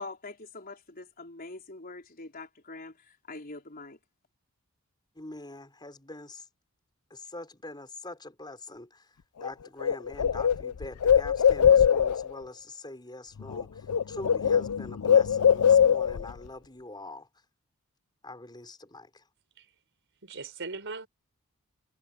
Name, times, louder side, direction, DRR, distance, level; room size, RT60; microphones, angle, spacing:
voice 1, 0.0-4.0, left 3 dB, 40° left, 4.2 m, -43 dB
voice 2, 5.2-6.4 7.1-9.0 9.4-17.3 18.2-19.2, left 2 dB, 20° left, 5.5 m, -44 dB
Bird, 9.4-9.5 9.8-12.3 13.4-13.6 13.9-16.3, left 8 dB, 75° left, 0.5 m, -22 dB
voice 3, 20.2-21.1, right 4 dB, 55° right, 5.3 m, -39 dB
head